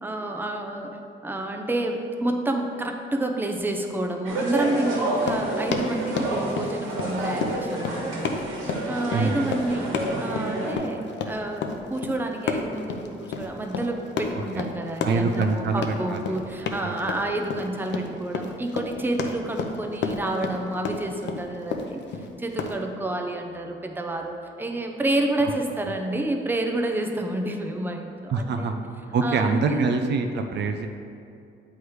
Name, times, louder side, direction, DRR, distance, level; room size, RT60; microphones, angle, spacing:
voice 1, 0.0-8.4 8.9-9.9 10.2-22.0 22.4-28.8 29.2-30.0, right 1 dB, 10° right, 3 dB, 0.6 m, -29 dB
sound 1, 4.2-10.8, right 1 dB, 85° right, 1.3 m, -29 dB
Run, 5.1-22.8, left 5 dB, 65° left, 0.6 m, -31 dB
voice 2, 14.3-14.6 15.0-16.2 16.8-17.0 25.4-25.5 28.3-28.8 29.1-30.9, right 4 dB, 60° right, 5 dB, 0.5 m, -25 dB
8.0 x 3.3 x 4.6 m, 2.5 s
cardioid pair, 90°, 20 cm